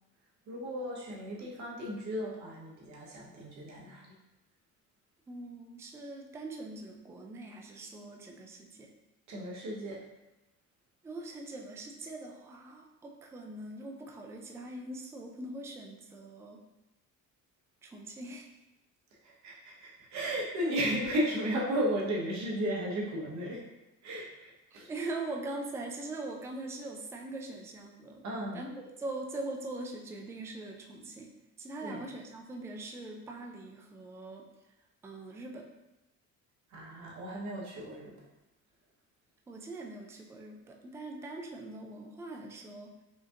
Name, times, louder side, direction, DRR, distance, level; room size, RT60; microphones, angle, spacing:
voice 1, 0.5-4.1 9.3-10.0 19.2-23.7 24.0-24.9 28.2-28.6 31.8-32.0 36.7-38.1, equal, 65° right, -3 dB, 1.2 m, -35 dB
voice 2, 5.3-8.9 11.0-16.6 17.8-18.5 24.7-28.2 28.5-31.3 31.6-34.5 35.0-35.7 39.5-43.0, right 2 dB, 10° right, 2 dB, 0.3 m, -42 dB
5.0 x 2.8 x 2.5 m, 0.98 s
cardioid pair, 140°, 31 cm